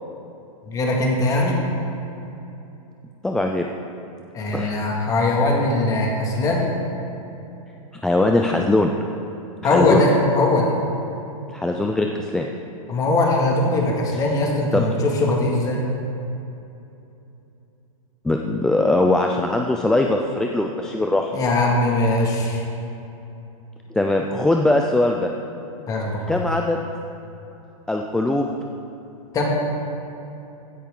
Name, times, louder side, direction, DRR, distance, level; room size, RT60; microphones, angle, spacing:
voice 1, 0.7-1.6 4.3-6.7 9.6-10.7 12.9-15.8 21.3-22.6 25.9-26.4 29.3-29.4, left 2 dB, 20° left, -1 dB, 2.1 m, -20 dB
voice 2, 3.2-3.6 4.5-4.7 8.0-8.9 9.6-10.0 11.5-12.5 14.7-14.9 18.2-21.3 23.9-25.3 26.3-26.8 27.9-28.5, left 2 dB, 5° left, 2 dB, 0.3 m, -21 dB
16.0 x 10.0 x 3.8 m, 2.9 s
hypercardioid pair, 150°, 18 cm